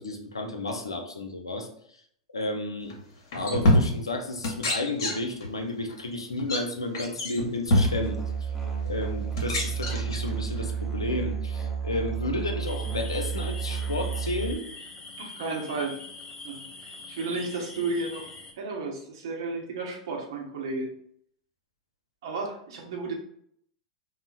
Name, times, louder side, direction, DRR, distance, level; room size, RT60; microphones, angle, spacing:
voice 1, 0.0-1.7 2.3-2.9 3.3-8.2 8.8-14.6, left 2 dB, 80° left, 4 dB, 0.5 m, -32 dB
sound 1, 2.9-3.0 3.3-4.2 4.4-5.5 5.8-5.9 6.4-6.6 6.9-8.1 8.9-9.0 9.3-10.6, left 1 dB, 60° left, 0.8 m, -25 dB
Musical instrument, 7.7-14.5, right 7 dB, 10° right, 0.7 m, -31 dB
sound 2, 12.6-18.5, left 3 dB, 20° left, 0.4 m, -44 dB
voice 2, 15.2-16.0 16.4-18.3 18.6-20.9 22.2-23.1, right 3 dB, 60° right, 1 dB, 0.8 m, -33 dB
3.9 x 2.0 x 2.2 m, 0.65 s
figure-of-eight pair, 90°, 3 cm